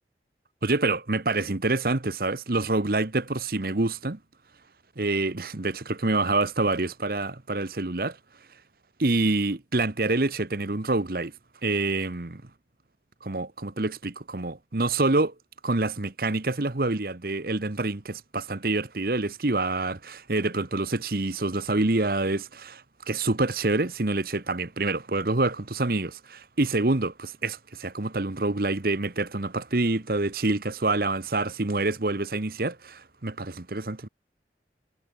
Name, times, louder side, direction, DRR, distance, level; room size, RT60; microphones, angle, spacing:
voice 1, 0.6-4.2 5.0-8.2 9.0-11.3 11.6-12.4 13.2-15.3 15.6-22.7 23.1-34.1, right 2 dB, 55° right, 1.2 m, -27 dB
head